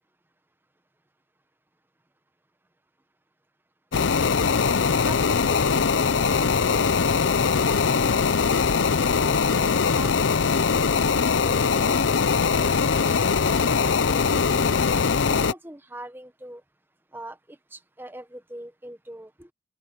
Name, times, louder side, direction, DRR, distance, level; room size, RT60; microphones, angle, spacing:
sound 1, 3.9-15.5, left 5 dB, 75° left, 0.6 m, -21 dB
voice 1, 4.5-8.3 9.2-12.0 12.4-14.7 15.3-16.6 17.1-19.5, right 1 dB, 10° right, 1.1 m, -43 dB
open air
head